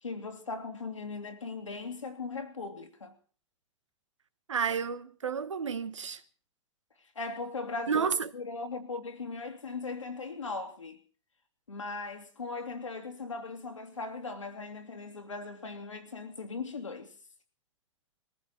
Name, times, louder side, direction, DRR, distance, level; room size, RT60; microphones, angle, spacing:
voice 1, 0.0-3.1 7.2-11.0 11.7-17.1, left 3 dB, 85° left, 2.6 m, -39 dB
voice 2, 4.5-6.2 7.9-8.3, right 6 dB, 80° right, 1.1 m, -31 dB
21.5 x 15.0 x 4.4 m
figure-of-eight pair, 95°, 16 cm